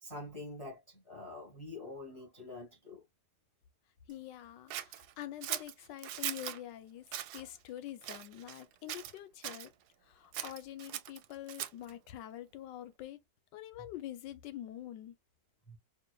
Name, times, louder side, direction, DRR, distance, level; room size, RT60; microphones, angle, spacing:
voice 1, 0.0-3.0 15.7-15.8, left 2 dB, 20° left, 1.4 m, -46 dB
voice 2, 4.1-9.7 10.0-13.2 13.5-15.1, left 12 dB, 85° left, 1.4 m, -46 dB
Scissors, 4.7-6.6 7.1-7.4 8.0-8.6 8.9-9.7 10.3-11.9, right 12 dB, 75° right, 1.1 m, -40 dB
4.6 x 2.8 x 2.2 m
omnidirectional pair, 1.9 m